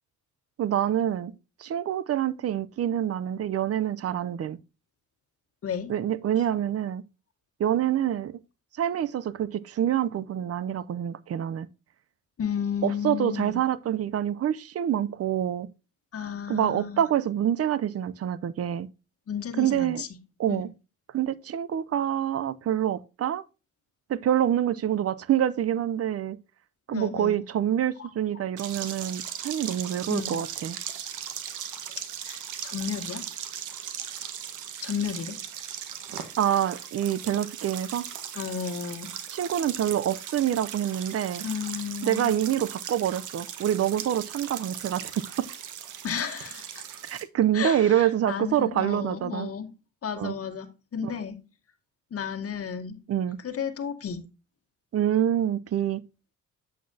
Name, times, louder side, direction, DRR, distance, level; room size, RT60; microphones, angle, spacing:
voice 1, 0.6-1.3 1.6-4.6 5.9-7.0 7.6-8.4 8.8-11.7 12.8-15.7 16.5-18.9 19.6-20.0 20.4-20.7 21.1-23.4 24.1-26.4 26.9-30.8 36.4-38.1 39.3-41.4 42.0-45.5 47.0-49.5 50.2-50.4 51.0-51.1 53.1-53.4 54.9-56.0, right 10 dB, 50° right, 0.7 m, -26 dB
voice 2, 12.4-13.7 16.1-17.1 19.3-20.1 20.5-20.6 26.9-27.4 28.0-28.1 30.1-30.4 32.2-33.2 34.8-35.4 38.3-39.1 41.4-42.3 46.0-46.8 47.5-49.7 50.0-51.4 52.1-53.0 53.4-54.3, left 7 dB, 50° left, 2.0 m, -33 dB
sound 1, 28.6-47.2, right 9 dB, 80° right, 1.5 m, -38 dB
8.5 x 8.3 x 2.8 m
cardioid pair, 90°, 30 cm